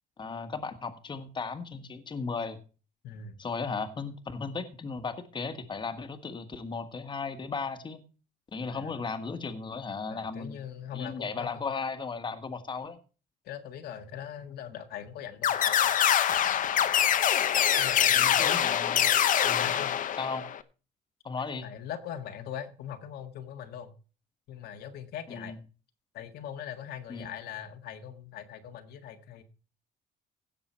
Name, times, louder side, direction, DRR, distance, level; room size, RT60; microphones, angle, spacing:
voice 1, 0.2-2.6 3.4-8.0 8.5-10.6 10.9-13.0 18.1-19.1 19.4-19.7 20.2-20.5 21.2-21.7 25.3-25.6 27.1-27.3, left 4 dB, 25° left, 8 dB, 1.6 m, -36 dB
voice 2, 3.0-3.4 8.7-9.1 10.1-11.6 13.4-16.0 17.8-18.6 19.6-20.0 21.6-23.9 24.5-25.6 26.1-29.4, left 9 dB, 70° left, 6 dB, 1.7 m, -41 dB
betaball lasers, 15.4-20.6, left 10 dB, 50° left, 0.9 m, -24 dB
16.5 x 6.8 x 4.4 m, 0.35 s
cardioid pair, 110°, 17 cm